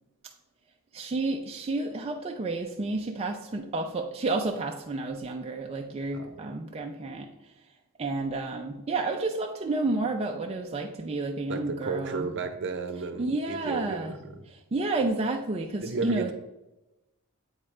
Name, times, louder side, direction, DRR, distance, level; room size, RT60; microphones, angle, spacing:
voice 1, 0.9-7.3 8.0-12.3 13.2-14.1 14.5-16.3, right 3 dB, 30° right, 2 dB, 0.4 m, -30 dB
voice 2, 6.1-6.5 11.5-14.4 15.8-16.3, right 4 dB, 60° right, 8 dB, 0.8 m, -34 dB
8.0 x 4.9 x 3.2 m, 0.96 s
head